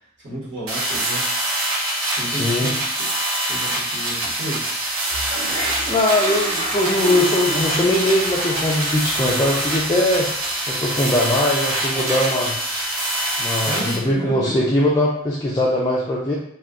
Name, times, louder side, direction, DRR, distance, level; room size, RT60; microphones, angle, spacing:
voice 1, 0.2-1.3 2.1-3.1 3.4-4.7 13.6-14.6, equal, 55° right, -8 dB, 1.1 m, -31 dB
sound 1, 0.7-14.0, right 1 dB, 85° right, 0.8 m, -25 dB
voice 2, 2.3-2.7 5.9-10.3 10.7-12.5 13.4-16.3, left 1 dB, 20° left, -5 dB, 0.4 m, -21 dB
Toilet flush, 4.8-13.7, right 1 dB, 35° right, 0.9 m, -32 dB
2.3 x 2.2 x 3.6 m, 0.71 s
head